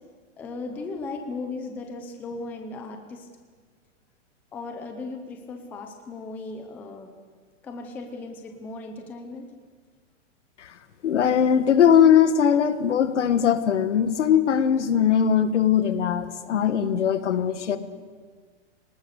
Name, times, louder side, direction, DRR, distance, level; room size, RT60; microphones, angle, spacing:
voice 1, 0.4-3.3 4.5-7.1 7.6-9.5, left 3 dB, 5° left, 5 dB, 0.6 m, -36 dB
voice 2, 11.0-17.8, left 8 dB, 70° left, 10 dB, 1.8 m, -20 dB
25.0 x 19.0 x 6.6 m, 1.5 s
hypercardioid pair, 170°, 37 cm